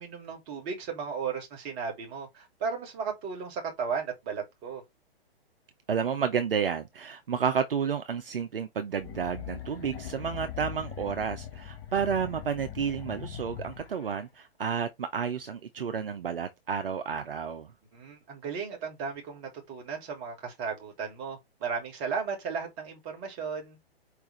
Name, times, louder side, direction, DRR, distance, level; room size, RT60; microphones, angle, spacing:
voice 1, 0.0-4.8 17.9-23.8, right 6 dB, 25° right, 1.8 m, -35 dB
voice 2, 5.9-17.7, right 7 dB, 60° right, 0.7 m, -31 dB
sound 1, 9.0-14.2, left 10 dB, 25° left, 1.1 m, -41 dB
4.8 x 3.5 x 3.2 m
figure-of-eight pair, 120°, 31 cm